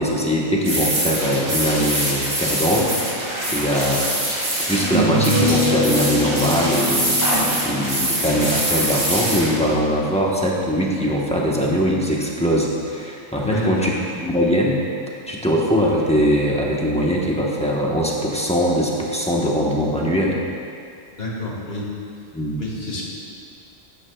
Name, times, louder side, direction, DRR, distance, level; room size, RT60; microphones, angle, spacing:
voice 1, 0.0-4.0 4.7-13.9 14.2-14.8 15.3-20.4 22.3-22.6, equal, 5° left, -4 dB, 1.1 m, -21 dB
sound 1, 0.6-9.7, right 1 dB, 85° right, 2.7 m, -24 dB
sound 2, 4.7-10.0, left 1 dB, 35° right, 2.4 m, -25 dB
voice 2, 13.4-13.9 21.1-21.9 22.6-23.0, left 1 dB, 65° left, -3 dB, 1.9 m, -28 dB
13.5 x 9.8 x 2.4 m, 2.4 s
omnidirectional pair, 1.1 m